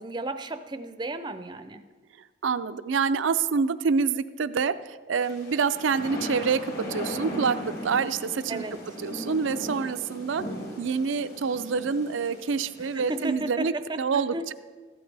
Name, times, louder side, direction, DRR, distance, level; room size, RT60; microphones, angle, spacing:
voice 1, 0.0-1.8 8.5-8.7 12.8-14.5, right 2 dB, 25° right, 10 dB, 0.5 m, -34 dB
voice 2, 2.4-4.7 5.1-8.6 9.0-10.5 10.8-14.5, right 5 dB, 80° right, 13 dB, 0.5 m, -27 dB
sound 1, 5.2-13.3, equal, 55° left, 2.8 m, -38 dB
15.0 x 12.5 x 3.4 m, 1.4 s
head